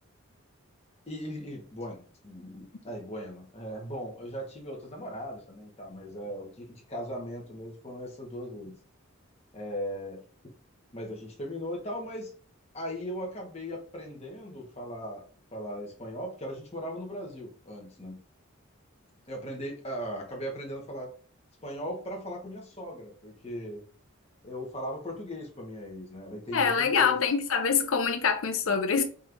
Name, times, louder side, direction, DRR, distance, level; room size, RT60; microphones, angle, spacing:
voice 1, 1.1-8.7 9.5-10.2 10.9-12.3 12.7-15.2 15.5-18.2 19.3-21.1 21.6-23.8 24.4-27.1, equal, 30° left, 1.2 m, -38 dB
voice 2, 26.5-29.0, left 6 dB, 70° left, 0.6 m, -25 dB
5.3 x 3.1 x 2.6 m
head